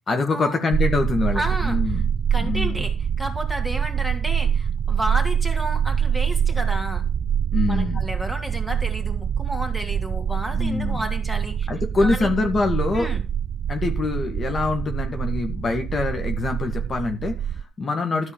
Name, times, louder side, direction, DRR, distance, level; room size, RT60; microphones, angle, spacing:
voice 1, 0.1-2.0 2.4-2.9 7.5-8.0 10.5-11.0 11.7-13.1 13.7-18.3, left 3 dB, 40° left, 5 dB, 1.9 m, -25 dB
sound 1, 0.7-17.6, right 8 dB, 55° right, 0.5 m, -25 dB
voice 2, 1.3-2.0 2.3-7.1 7.7-11.7 12.0-12.3 12.9-13.2, equal, ahead, 4 dB, 3.0 m, -31 dB
13.5 x 4.5 x 7.4 m, 0.32 s
cardioid pair, 110°, 0 cm